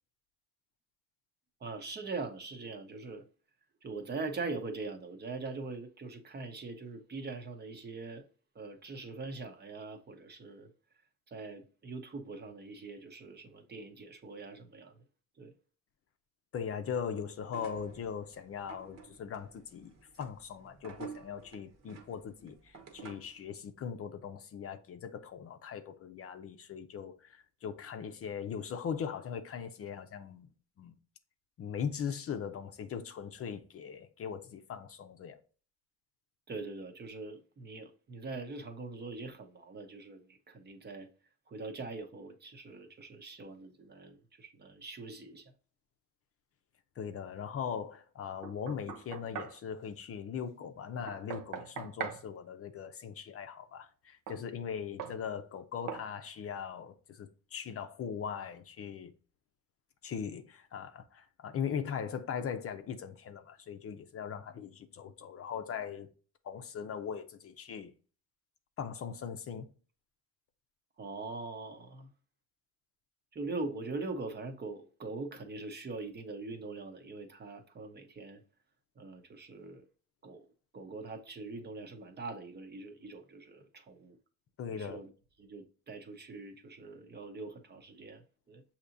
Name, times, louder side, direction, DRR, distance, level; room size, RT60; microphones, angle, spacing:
voice 1, 1.6-3.3 3.8-8.2 8.5-10.7 11.3-15.0 15.4-15.5 36.5-41.1 41.5-45.5 71.0-72.1 73.3-78.4 79.0-79.9 80.2-80.5 80.7-84.2 84.7-85.1 85.4-88.2 88.5-88.6, right 3 dB, 35° right, 0.8 m, -42 dB
voice 2, 16.5-30.5 30.8-30.9 31.6-35.4 47.0-59.1 60.0-66.1 66.4-67.9 68.8-69.7 84.6-85.0, left 7 dB, 45° left, 0.6 m, -40 dB
sound 1, 17.4-23.4, right 6 dB, 55° right, 1.1 m, -51 dB
Knock, 48.4-49.6 51.1-52.2 54.3-54.4 55.0-55.2 55.9-56.1, right 8 dB, 90° right, 0.8 m, -41 dB
6.8 x 2.9 x 2.6 m
cardioid pair, 105°, 31 cm